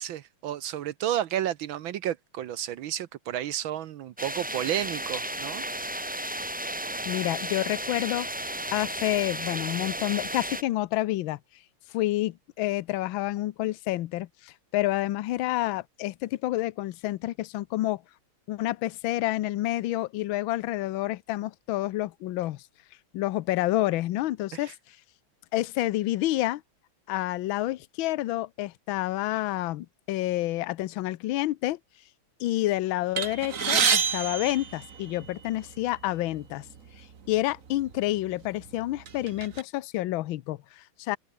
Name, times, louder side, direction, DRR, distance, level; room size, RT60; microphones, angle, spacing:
voice 1, 0.0-6.3 24.5-24.7, right 11 dB, 70° right, 1.6 m, -32 dB
sound 1, 4.2-10.6, right 1 dB, 5° right, 0.9 m, -33 dB
voice 2, 7.1-8.3 8.7-11.4 11.9-18.0 18.5-22.6 23.1-24.7 25.5-26.6 27.1-31.8 32.4-36.6 37.3-41.2, left 16 dB, 70° left, 1.5 m, -29 dB
sound 2, 33.2-35.5 36.3-36.5 36.8-37.0 37.8-38.0 38.5-39.6, right 6 dB, 40° right, 1.7 m, -27 dB
open air
omnidirectional pair, 2.3 m